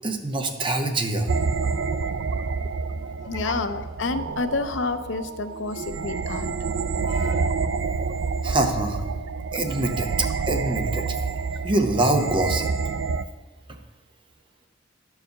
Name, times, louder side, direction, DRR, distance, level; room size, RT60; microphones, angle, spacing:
voice 1, 0.0-1.3 8.4-9.1 9.5-11.0 11.6-12.7, right 2 dB, 25° right, 4 dB, 0.9 m, -24 dB
sound 1, 1.3-13.3, right 4 dB, 70° right, 0.4 m, -28 dB
voice 2, 3.0-6.6 7.0-7.5, left 3 dB, 85° left, 9 dB, 0.6 m, -30 dB
11.5 x 4.8 x 6.5 m, 1.2 s
head